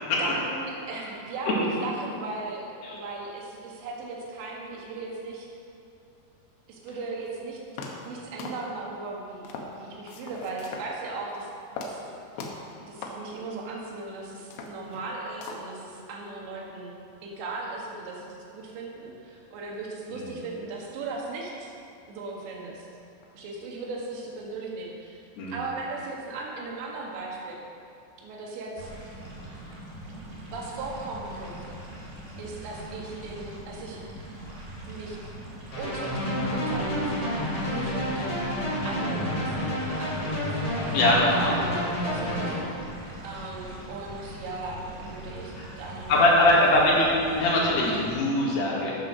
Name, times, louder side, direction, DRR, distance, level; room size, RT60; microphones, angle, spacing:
voice 1, 0.2-5.5 6.7-7.6 8.1-11.5 11.8-12.1 12.4-12.5 12.9-16.9 17.2-18.3 18.5-21.7 22.1-22.9 23.4-25.2 25.5-27.6 28.2-28.9 30.5-31.8 32.4-34.0 34.9-35.2 35.8-37.3 37.6-38.6 38.9-40.6 41.3-43.0 43.2-46.8, right 3 dB, 75° right, -2 dB, 4.0 m, -37 dB
sound 1, 7.3-7.4 7.8-8.1 8.4-9.0 9.5-9.8 10.1-10.9 11.2-11.5 11.8-12.1 12.4-12.7 13.0-13.2 13.7-13.8 14.4-15.1 15.4-15.8, left 4 dB, 80° left, 3.4 m, -39 dB
sound 2, 28.8-48.1, right 1 dB, 30° right, 1.5 m, -42 dB
sound 3, 35.7-42.6, equal, 40° left, 3.8 m, -29 dB
voice 2, 40.9-41.5 45.6-45.7 46.1-48.9, left 1 dB, 65° left, -4 dB, 3.9 m, -21 dB
12.0 x 8.3 x 6.2 m, 2.6 s
omnidirectional pair, 5.2 m